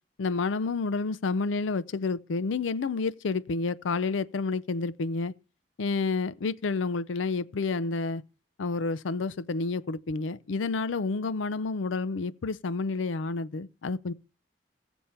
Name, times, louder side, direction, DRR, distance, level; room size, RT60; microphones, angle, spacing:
voice 1, 0.2-5.3 5.8-8.2 8.6-14.1, left 4 dB, 80° left, 0.5 m, -29 dB
15.5 x 7.1 x 4.4 m
head